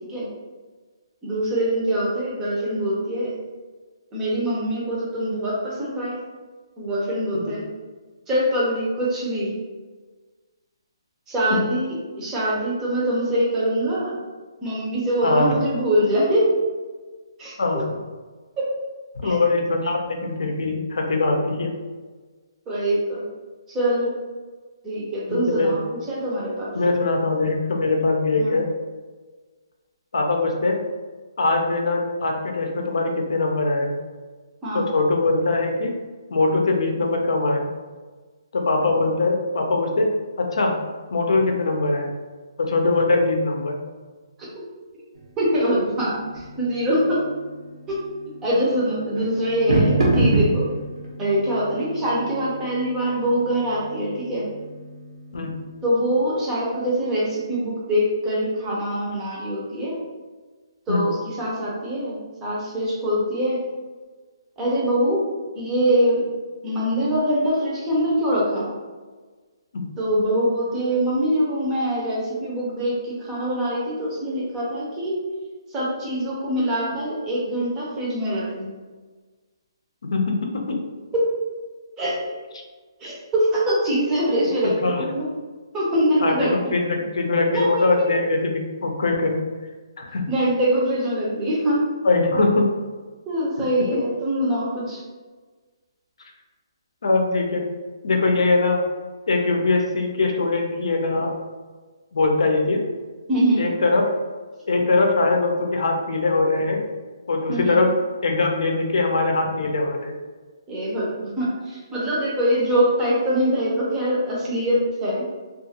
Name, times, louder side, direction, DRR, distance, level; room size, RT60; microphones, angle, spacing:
voice 1, 1.2-3.4 4.1-6.2 6.8-7.6 8.3-9.5 11.3-14.2 14.6-16.5 17.4-17.8 18.6-18.7 19.2-19.4 22.7-23.2 23.7-24.2 24.8-25.8 26.1-26.7 28.4-28.6 34.6-34.9 45.4-47.3 47.9-48.0 48.4-50.7 51.2-54.5 55.8-60.0 60.9-63.6 64.6-65.3 65.5-66.2 66.6-68.7 70.0-75.2 75.7-78.7 81.1-81.3 82.0-82.2 83.0-85.3 85.7-86.6 87.5-87.7 90.3-91.8 93.3-95.0 103.3-103.6 107.5-107.8 110.7-115.3, equal, 15° right, -6 dB, 0.6 m, -23 dB
voice 2, 15.2-15.5 17.6-18.0 19.2-21.7 25.3-25.8 26.7-28.7 30.1-30.8 31.4-34.0 34.7-36.0 36.3-37.7 38.5-40.1 40.4-40.8 41.1-42.1 42.6-43.8 55.3-55.6 60.9-61.1 69.7-69.8 80.0-80.8 84.8-85.0 86.2-89.4 90.0-90.2 92.0-92.7 97.0-97.7 98.0-98.8 99.3-101.3 102.1-102.8 103.6-104.1 104.7-106.8 107.3-107.9 108.2-110.2, left 3 dB, 75° left, 2 dB, 0.5 m, -22 dB
sound 1, 45.1-55.9, right 1 dB, 80° right, 0.9 m, -28 dB
2.4 x 2.4 x 2.8 m, 1.4 s
hypercardioid pair, 165°, 3 cm